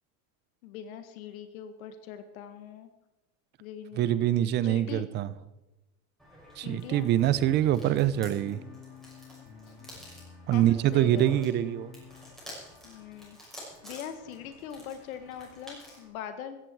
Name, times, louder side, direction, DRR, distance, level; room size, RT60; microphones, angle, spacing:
voice 1, 0.6-2.9 3.6-4.1 4.6-5.0 6.6-7.1 10.5-11.2 12.8-13.4 13.8-16.6, left 9 dB, 80° left, 9 dB, 1.9 m, -42 dB
voice 2, 4.0-5.3 6.6-8.6 10.5-11.9, right 12 dB, 25° right, 16 dB, 0.5 m, -25 dB
sound 1, 6.2-16.1, equal, ahead, 6.1 m, -49 dB
sound 2, 7.1-12.3, left 5 dB, 35° left, 3.5 m, -50 dB
16.5 x 14.5 x 4.7 m, 0.98 s
supercardioid pair, 155°, 42 cm